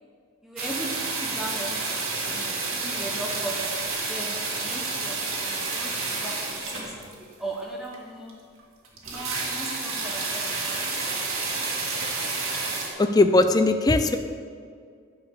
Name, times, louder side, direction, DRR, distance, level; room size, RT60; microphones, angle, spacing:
voice 1, 0.4-1.9 2.2-8.4 9.0-10.9, right 1 dB, ahead, -2 dB, 0.8 m, -38 dB
sound 1, 0.6-7.3 7.9-8.0 8.3-8.4 8.6-8.7 8.9-12.9, right 3 dB, 80° right, 1.8 m, -30 dB
voice 2, 13.0-14.2, left 2 dB, 20° left, 8 dB, 0.3 m, -19 dB
10.0 x 4.9 x 6.9 m, 2.1 s
head